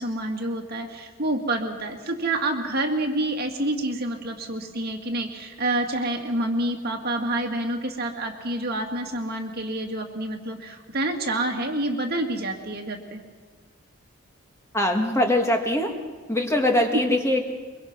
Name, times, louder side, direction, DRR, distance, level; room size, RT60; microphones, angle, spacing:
voice 1, 0.0-13.2 16.9-17.0, right 1 dB, 45° right, 3 dB, 2.2 m, -28 dB
voice 2, 14.7-16.0 16.3-17.4, left 1 dB, 10° left, 3 dB, 1.8 m, -22 dB
23.5 x 23.5 x 6.0 m, 1.4 s
head